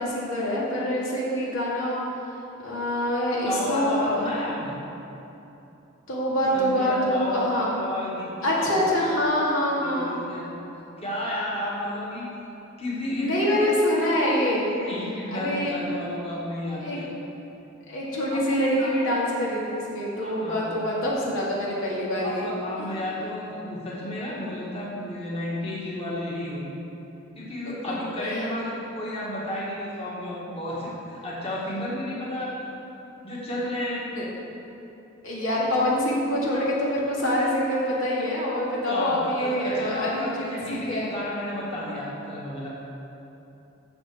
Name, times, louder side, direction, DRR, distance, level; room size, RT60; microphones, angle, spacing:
voice 1, 0.0-2.0 2.6-4.2 6.1-7.7 8.4-10.1 13.1-14.7 15.3-15.7 16.8-17.0 17.9-22.5 27.9-28.4 34.0-34.2 35.2-41.1, equal, 85° left, -5 dB, 2.3 m, -25 dB
voice 2, 3.5-4.8 6.5-8.8 9.8-10.6 11.0-12.3 12.8-13.7 14.7-17.1 18.3-18.4 18.8-18.9 20.2-20.7 22.2-26.7 27.4-33.0 33.2-34.0 38.9-42.7, left 1 dB, 30° left, -6 dB, 1.8 m, -32 dB
8.0 x 7.1 x 6.8 m, 3.0 s
head